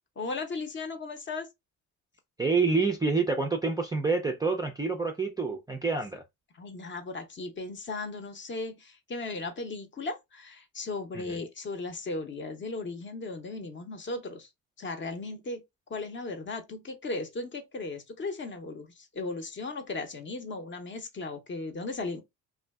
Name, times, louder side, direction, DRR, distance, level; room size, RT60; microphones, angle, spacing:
voice 1, 0.2-1.5 6.5-14.5 14.8-15.6 15.9-22.2, left 3 dB, 30° left, 0.6 m, -36 dB
voice 2, 2.4-6.2 11.2-11.4, right 4 dB, 10° right, 0.4 m, -27 dB
2.5 x 2.3 x 2.2 m
hypercardioid pair, 70°, 39 cm